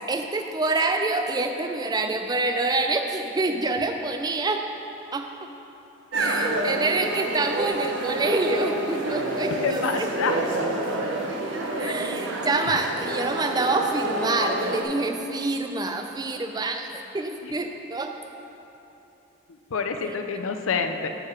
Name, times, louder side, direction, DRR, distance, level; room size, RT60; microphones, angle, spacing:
voice 1, 0.1-4.6 5.1-5.3 6.2-10.1 11.8-18.1 20.0-20.2, right 3 dB, 20° right, 5 dB, 0.4 m, -27 dB
sound 1, 6.1-14.8, right 1 dB, 65° right, 0.8 m, -28 dB
voice 2, 9.6-10.4 11.8-12.0 12.2-12.3 17.4-17.5 19.7-21.1, left 5 dB, 80° left, 7 dB, 0.5 m, -27 dB
8.8 x 4.8 x 4.9 m, 3.0 s
head